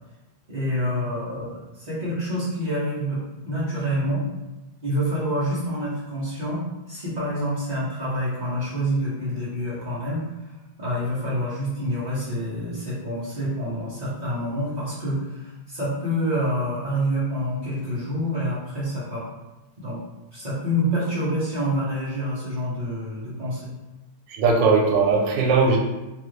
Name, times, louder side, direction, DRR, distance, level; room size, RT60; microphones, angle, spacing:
voice 1, 0.5-4.2 4.8-6.6 6.9-10.3 10.8-19.3 19.8-20.0 20.3-23.6, equal, 40° right, -9 dB, 0.6 m, -27 dB
voice 2, 24.3-25.8, right 4 dB, 85° right, 0 dB, 1.3 m, -19 dB
3.2 x 2.4 x 3.1 m, 1.0 s
omnidirectional pair, 2.0 m